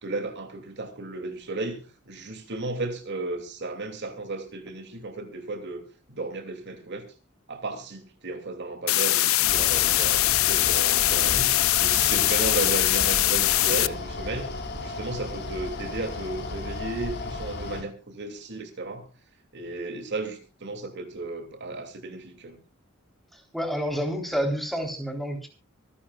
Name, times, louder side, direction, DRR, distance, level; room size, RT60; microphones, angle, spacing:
voice 1, 0.0-5.8 6.1-7.1 7.5-14.5 14.8-19.1 19.5-22.6, right 2 dB, 55° right, 2.8 m, -34 dB
sound 1, 8.9-13.9, left 16 dB, 70° left, 0.6 m, -22 dB
Mechanical fan, 9.4-17.8, left 2 dB, 55° left, 4.4 m, -35 dB
voice 2, 23.3-25.5, equal, ahead, 3.7 m, -29 dB
25.5 x 11.5 x 2.4 m
head